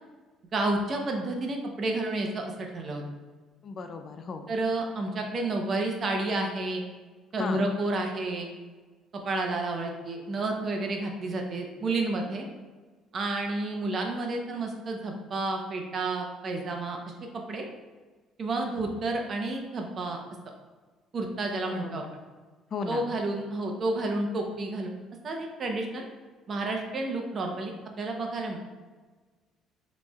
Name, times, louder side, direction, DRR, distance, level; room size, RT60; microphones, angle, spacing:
voice 1, 0.5-3.0 4.5-6.8 7.3-8.5 9.1-12.5 13.1-17.0 17.5-17.7 18.4-20.2 21.1-22.0 22.9-24.9 25.2-26.1 26.5-28.6, right 2 dB, 40° right, 2 dB, 0.8 m, -30 dB
voice 2, 3.6-4.5 7.4-7.6 21.7-22.0 22.7-23.1, left 4 dB, 40° left, 7 dB, 0.4 m, -35 dB
6.8 x 3.1 x 2.3 m, 1.4 s
cardioid pair, 110°, 0 cm